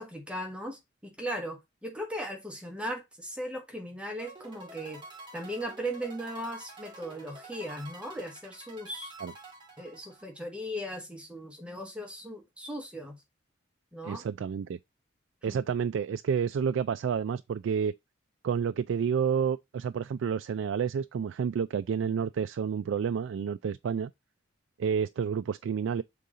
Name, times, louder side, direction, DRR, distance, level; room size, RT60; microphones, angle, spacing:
voice 1, 0.0-5.0 5.3-9.1 9.8-13.2 13.9-14.2 15.4-15.6, equal, 5° right, 1.1 m, -38 dB
sound 1, 4.2-10.5, right 2 dB, 25° right, 1.7 m, -49 dB
voice 2, 14.0-14.8 15.4-17.9 18.4-24.1 24.8-26.0, right 7 dB, 75° right, 0.3 m, -30 dB
6.9 x 3.8 x 3.7 m
head